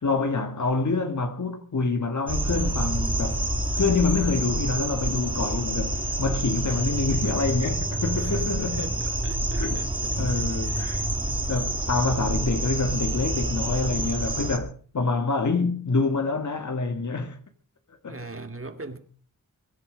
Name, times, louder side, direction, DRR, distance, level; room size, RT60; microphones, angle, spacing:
voice 1, 0.0-3.4 3.7-8.9 9.6-9.8 10.2-11.1 11.5-17.4 18.0-18.2, left 3 dB, 60° left, 2.2 m, -26 dB
sound 1, 2.3-14.6, right 1 dB, 15° right, 2.4 m, -28 dB
voice 2, 8.1-10.9 11.2-11.5 18.1-19.0, right 2 dB, 40° right, 2.1 m, -41 dB
22.5 x 12.0 x 5.2 m
wide cardioid pair, 110°, 32 cm